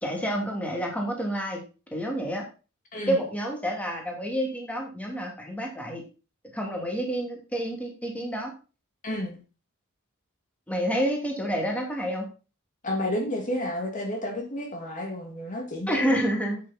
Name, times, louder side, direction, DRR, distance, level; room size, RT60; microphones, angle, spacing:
voice 1, 0.0-1.6 1.9-2.4 3.1-6.0 6.5-8.5 10.7-12.2 15.9-16.6, equal, 5° left, 0 dB, 2.7 m, -28 dB
voice 2, 2.9-3.2 9.0-9.4 12.8-16.2, left 1 dB, 40° left, 1 dB, 2.4 m, -31 dB
8.7 x 8.6 x 4.2 m, 0.33 s
head